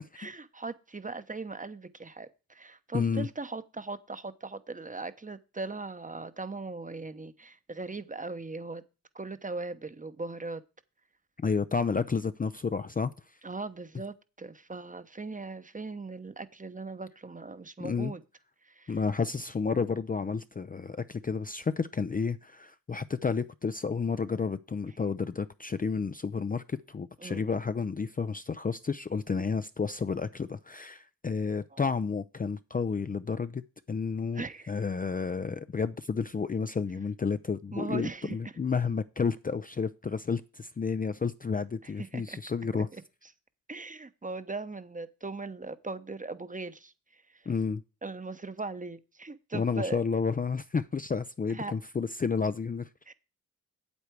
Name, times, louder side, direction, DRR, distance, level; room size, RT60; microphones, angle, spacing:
voice 1, 0.2-8.8 9.1-10.6 13.4-18.2 18.6-19.0 27.2-27.4 31.7-31.8 34.3-34.7 37.7-38.5 41.8-42.4 42.9-43.0 43.7-47.5 48.0-50.0 51.5-51.7 53.1-53.2, right 3 dB, 20° right, 0.9 m, -39 dB
voice 2, 2.9-3.3 11.4-13.1 17.8-18.1 18.9-33.6 33.9-42.9 47.5-47.8 49.5-52.9, left 5 dB, 25° left, 0.5 m, -31 dB
8.3 x 8.0 x 4.6 m
cardioid pair, 60°, 35 cm